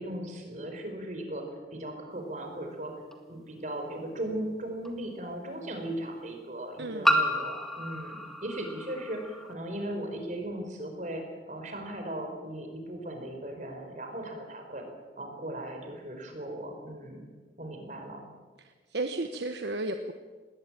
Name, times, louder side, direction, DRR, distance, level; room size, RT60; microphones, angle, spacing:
voice 1, 0.0-1.4 1.7-2.9 3.3-14.8 15.2-17.2 17.6-18.2, right 1 dB, 40° right, 4 dB, 4.8 m, -37 dB
sound 1, 3.1-3.2 4.8-4.9 7.0-9.5, equal, ahead, 1.8 m, -29 dB
voice 2, 6.8-7.1 18.6-20.1, right 2 dB, 65° right, 7 dB, 1.1 m, -34 dB
19.5 x 18.5 x 8.9 m, 1.4 s
head